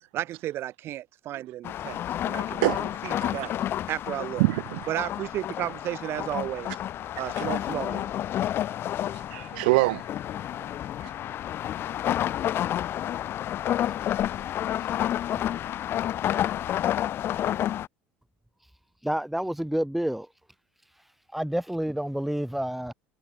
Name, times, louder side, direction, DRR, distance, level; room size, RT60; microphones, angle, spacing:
voice 1, 0.1-3.5 3.9-4.4 4.9-6.7 7.2-8.1, right 13 dB, 50° right, 6.1 m, -33 dB
sound 1, 1.6-17.9, left 11 dB, 45° left, 6.5 m, -30 dB
voice 2, 2.6-3.5 4.4-4.8 9.1-10.1 11.0-11.1, right 25 dB, 70° right, 1.8 m, -26 dB
voice 3, 19.0-20.3 21.3-22.9, right 1 dB, 5° right, 2.4 m, -29 dB
hypercardioid pair, 70°, 5 cm